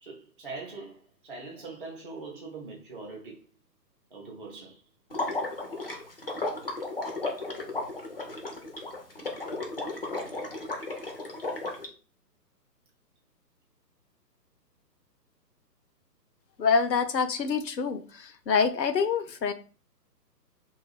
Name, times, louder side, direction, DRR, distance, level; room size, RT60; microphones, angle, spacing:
voice 1, 0.0-3.5 4.1-4.8, right 3 dB, 35° right, 0.4 m, -42 dB
Water / Liquid, 5.1-11.9, left 2 dB, 40° left, 0.4 m, -34 dB
voice 2, 16.6-19.5, left 5 dB, 85° left, 0.6 m, -26 dB
2.5 x 2.3 x 3.3 m
figure-of-eight pair, 135°, 50 cm